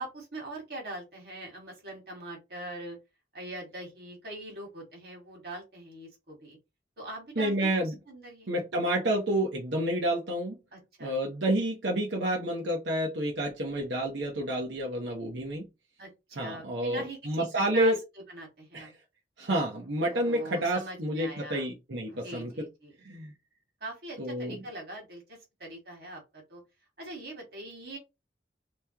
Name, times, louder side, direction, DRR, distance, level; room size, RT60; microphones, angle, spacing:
voice 1, 0.0-3.0 3.3-6.6 7.0-8.5 10.7-11.1 16.0-17.9 18.3-18.9 20.1-21.7 22.1-22.9 23.8-25.2 25.6-26.6 27.0-28.0, right 2 dB, 60° right, 1.7 m, -42 dB
voice 2, 7.4-7.9 8.5-10.6 11.0-15.7 16.4-18.0 18.7-18.9 19.4-22.6 23.0-23.3 24.2-24.6, right 1 dB, 85° right, 0.9 m, -29 dB
3.5 x 3.1 x 2.9 m
head